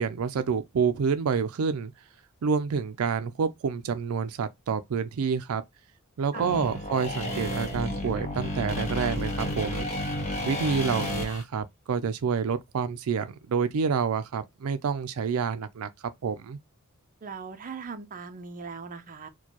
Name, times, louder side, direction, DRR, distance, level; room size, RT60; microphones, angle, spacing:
voice 1, 0.0-1.9 2.4-5.6 6.2-9.9 10.5-15.9 16.2-16.6, right 6 dB, 90° right, 0.4 m, -28 dB
sound 1, 6.3-11.4, left 1 dB, 35° left, 1.2 m, -31 dB
voice 2, 17.2-19.3, right 5 dB, 40° right, 0.5 m, -39 dB
4.4 x 2.2 x 2.9 m
head